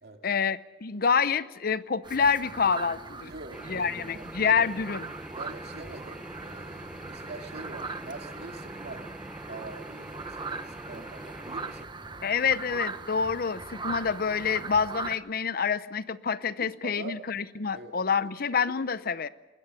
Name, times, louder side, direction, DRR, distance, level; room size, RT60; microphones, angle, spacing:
voice 1, 0.2-3.3 3.7-5.1 12.2-19.3, left 6 dB, 50° left, 15 dB, 0.7 m, -27 dB
sound 1, 2.0-15.2, right 4 dB, 25° right, 1.1 m, -40 dB
voice 2, 3.2-4.6 5.4-9.0 9.5-11.9 16.6-17.2 17.7-17.9, right 3 dB, 60° right, 4 dB, 2.4 m, -44 dB
sound 2, 3.5-11.9, right 1 dB, 5° right, 0.8 m, -44 dB
21.0 x 20.0 x 7.1 m, 1.3 s
head